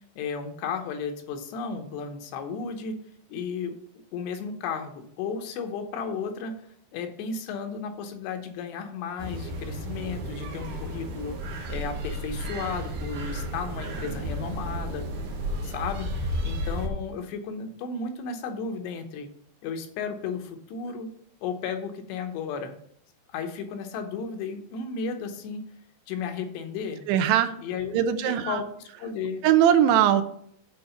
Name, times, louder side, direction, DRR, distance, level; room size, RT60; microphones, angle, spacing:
voice 1, 0.2-3.0 3.3-3.7 4.1-6.6 6.9-15.0 15.6-19.3 19.6-21.1 21.4-22.7 23.3-25.6 26.1-27.0 27.6-28.7 29.0-29.5, left 5 dB, 85° left, 5 dB, 3.2 m, -34 dB
sound 1, 9.2-16.9, equal, 60° right, 2.3 m, -33 dB
voice 2, 27.1-27.5 27.9-28.6 29.4-30.2, right 10 dB, 85° right, 10 dB, 2.8 m, -20 dB
8.5 x 3.9 x 6.9 m, 0.66 s
omnidirectional pair, 4.8 m